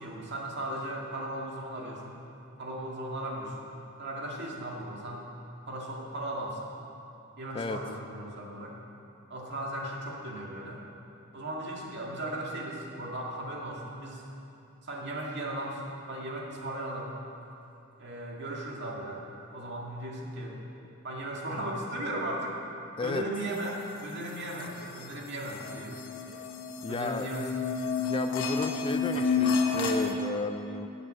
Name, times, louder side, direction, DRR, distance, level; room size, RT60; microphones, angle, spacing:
voice 1, 0.0-2.2 2.6-3.7 4.0-5.3 5.7-6.7 7.4-8.8 9.3-10.8 11.3-14.2 14.8-17.2 18.0-20.6 21.0-22.6 23.0-26.1 26.9-27.5, right 1 dB, 60° right, -2 dB, 2.0 m, -37 dB
sound 1, 24.8-24.9 25.5-30.1, left 4 dB, 80° left, 1.2 m, -30 dB
voice 2, 26.8-27.3 28.0-30.9, left 3 dB, 25° left, 8 dB, 0.4 m, -33 dB
11.0 x 8.2 x 7.5 m, 2.8 s
head